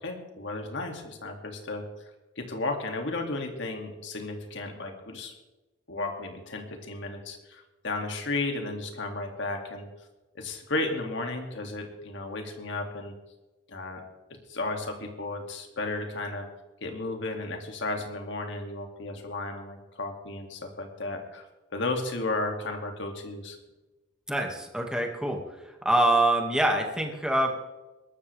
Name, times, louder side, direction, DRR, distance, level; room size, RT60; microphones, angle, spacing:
voice 1, 0.0-1.8 2.4-5.3 5.9-9.9 10.3-13.1 13.7-14.0 14.3-16.5 16.8-21.4 21.7-23.6, left 2 dB, 65° left, 3 dB, 2.5 m, -34 dB
voice 2, 24.3-25.4 25.8-27.5, right 1 dB, 5° right, 1 dB, 2.1 m, -24 dB
21.5 x 13.0 x 3.5 m, 1.1 s
head